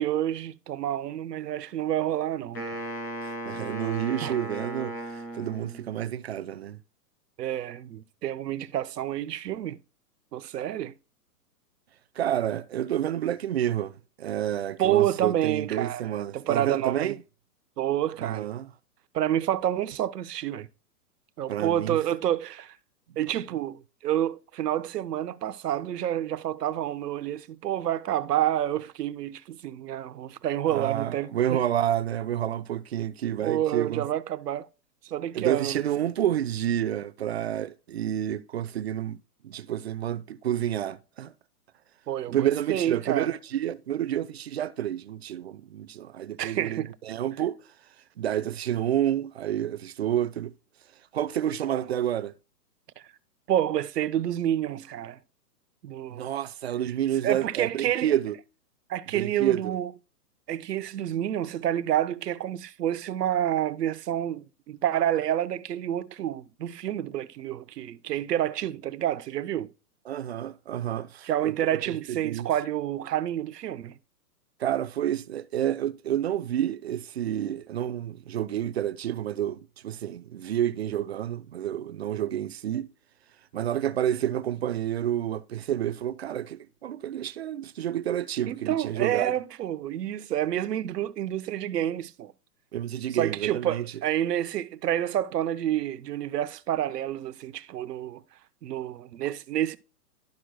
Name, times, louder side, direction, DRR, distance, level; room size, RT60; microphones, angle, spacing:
voice 1, 0.0-2.6 4.2-4.4 7.4-9.8 10.3-10.9 14.8-17.1 17.8-18.5 19.1-20.7 21.4-22.8 23.2-31.6 33.4-34.7 35.0-35.9 42.1-43.3 46.4-46.9 53.5-55.2 55.8-56.3 57.2-58.1 58.9-59.9 60.5-69.7 71.2-74.0 88.5-92.3 93.1-98.2 98.6-99.8, right 11 dB, 85° right, 0.8 m, -29 dB
Wind instrument woodwind instrument, 2.5-6.0, right 1 dB, 15° left, 0.5 m, -36 dB
voice 2, 3.2-6.8 12.2-17.2 18.2-18.7 21.5-22.0 30.7-34.1 35.3-39.2 39.4-41.3 42.3-47.6 48.2-50.5 51.1-52.3 56.1-58.4 59.1-59.8 70.1-71.5 71.9-72.5 74.6-82.9 83.5-89.3 92.7-93.9, right 11 dB, 45° right, 0.4 m, -29 dB
11.5 x 6.1 x 2.2 m
hypercardioid pair, 155°, 47 cm